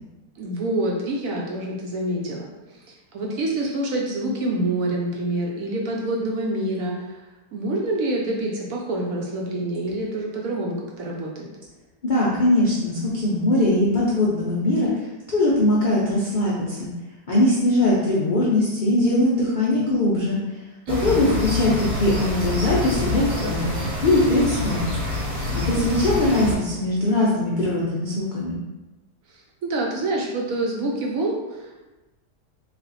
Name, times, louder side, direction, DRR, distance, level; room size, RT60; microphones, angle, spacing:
voice 1, 0.4-7.2 7.5-11.5 20.9-21.4 25.5-25.9 29.3-31.8, right 1 dB, 70° right, -1 dB, 0.9 m, -27 dB
voice 2, 12.0-15.0 15.3-16.9 17.3-20.4 20.9-23.7 24.0-24.9 25.7-28.6, left 1 dB, 75° left, -7 dB, 0.4 m, -21 dB
sound 1, 20.9-26.5, left 2 dB, 25° right, 0.9 m, -27 dB
3.2 x 2.5 x 4.0 m, 1.1 s
omnidirectional pair, 1.8 m